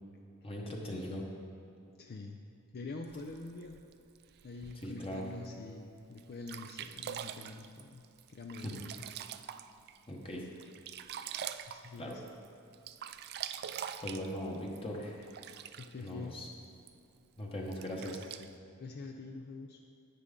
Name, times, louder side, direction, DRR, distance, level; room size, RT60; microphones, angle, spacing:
voice 1, 0.4-1.2 4.8-5.2 8.6-8.7 10.1-10.5 12.0-12.2 14.0-15.3 16.0-16.5 17.4-18.3, equal, 25° left, -2 dB, 1.0 m, -39 dB
voice 2, 2.0-2.4 2.7-3.8 4.4-9.1 11.7-12.2 15.8-16.4 18.8-19.8, left 3 dB, 45° left, 3 dB, 0.5 m, -45 dB
Sink (filling or washing), 3.1-5.1 5.7-5.8 6.2-6.3 6.5-10.0 10.3-12.5 12.7-16.1 16.9-17.0 17.7-18.5, right 9 dB, 45° right, 0.3 m, -44 dB
10.0 x 9.0 x 3.8 m, 2.7 s
head